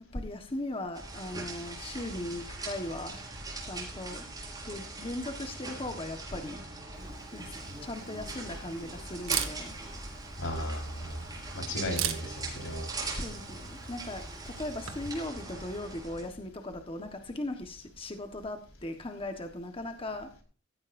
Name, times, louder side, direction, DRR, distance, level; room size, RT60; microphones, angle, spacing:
voice 1, 0.1-3.3 3.6-4.3 4.6-6.6 7.3-9.7 13.2-20.3, left 1 dB, 30° left, 5 dB, 1.3 m, -38 dB
sound 1, 0.9-16.3, right 2 dB, 20° right, 5.7 m, -41 dB
Camera, 6.9-15.3, right 10 dB, 80° right, 1.8 m, -41 dB
voice 2, 10.4-11.2 11.5-12.9, equal, 85° left, 2 dB, 4.7 m, -35 dB
16.0 x 16.0 x 2.6 m, 0.40 s
head